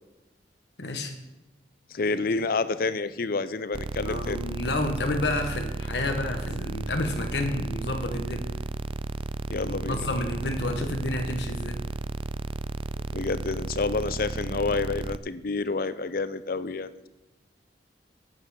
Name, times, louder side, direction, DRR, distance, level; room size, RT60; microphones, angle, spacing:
voice 1, 0.8-1.1 4.0-8.4 9.6-11.8, left 2 dB, 70° left, 5 dB, 1.4 m, -30 dB
voice 2, 1.9-4.4 9.5-10.1 13.1-17.1, left 3 dB, 55° left, 15 dB, 0.6 m, -29 dB
sound 1, 3.7-15.2, right 3 dB, 30° right, 0.3 m, -33 dB
9.5 x 8.2 x 7.6 m, 1.0 s
head